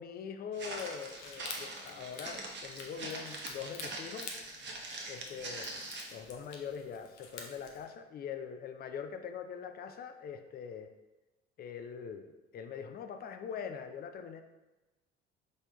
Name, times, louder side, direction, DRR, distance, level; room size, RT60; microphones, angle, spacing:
voice 1, 0.0-4.3 5.1-5.8 6.1-10.9 11.6-14.4, left 7 dB, 30° left, 7 dB, 0.4 m, -43 dB
Walk footsteps, 0.5-6.2, right 2 dB, 35° right, 0.8 m, -43 dB
sound 1, 0.6-7.8, left 4 dB, 75° left, 0.6 m, -49 dB
5.1 x 3.5 x 2.2 m, 1.1 s
figure-of-eight pair, 50°, 34 cm